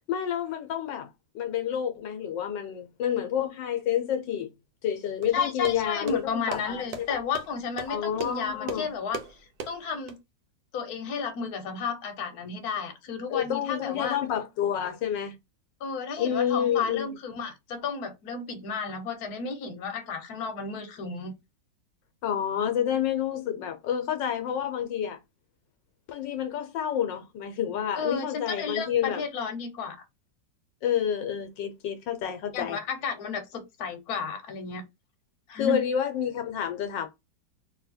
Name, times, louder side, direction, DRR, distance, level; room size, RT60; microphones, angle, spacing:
voice 1, 0.1-1.1 1.3-4.5 4.8-7.2 7.9-8.9 13.3-15.3 16.2-17.1 22.2-25.2 26.1-29.2 30.8-32.8 35.6-37.1, left 9 dB, 80° left, 1.4 m, -29 dB
sound 1, 5.2-10.2, right 5 dB, 70° right, 1.3 m, -40 dB
voice 2, 5.3-9.4 9.7-10.2 10.7-14.2 15.8-21.3 27.9-30.0 32.5-34.8 35.5-35.8, left 5 dB, 60° left, 1.3 m, -33 dB
3.2 x 2.7 x 4.1 m
omnidirectional pair, 2.0 m